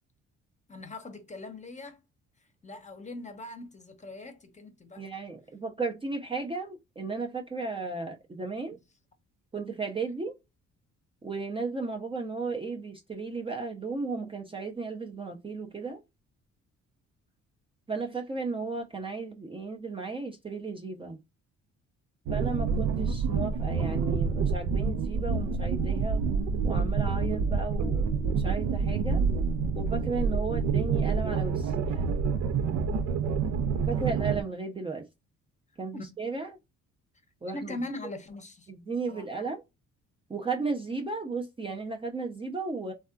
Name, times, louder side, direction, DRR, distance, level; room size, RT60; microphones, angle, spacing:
voice 1, 0.7-2.0 2.4-5.1 35.9-36.1 37.5-38.7 39.1-39.5, left 2 dB, 25° left, 0.8 m, -41 dB
voice 2, 5.0-8.8 9.5-10.3 11.2-16.0 17.9-21.2 22.3-26.2 26.6-29.3 29.8-32.2 33.9-35.0 35.8-36.5 37.4-37.8 38.7-39.6 40.3-42.9, right 4 dB, 20° right, 0.5 m, -34 dB
sound 1, 22.3-34.4, right 5 dB, 75° right, 0.5 m, -27 dB
3.4 x 2.2 x 2.5 m
cardioid pair, 90°, 30 cm